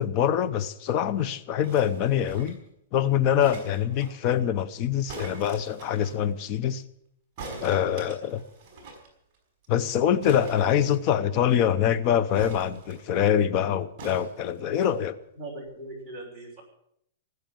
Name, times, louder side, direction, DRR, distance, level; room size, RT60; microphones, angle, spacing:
voice 1, 0.0-2.6 2.9-6.8 7.6-8.4 9.7-15.2, left 9 dB, 30° left, 16 dB, 0.7 m, -24 dB
garbage bag plastic kick roll, 1.6-2.7 3.4-4.1 5.1-6.2 7.4-9.1 9.3-9.4 9.6-9.8 10.2-11.4 12.3-13.3 14.0-14.9 15.7-15.8, right 2 dB, 25° right, 5.2 m, -43 dB
voice 2, 15.3-16.6, right 2 dB, ahead, -5 dB, 6.1 m, -40 dB
19.5 x 8.0 x 9.0 m, 0.72 s
supercardioid pair, 175°, 0 cm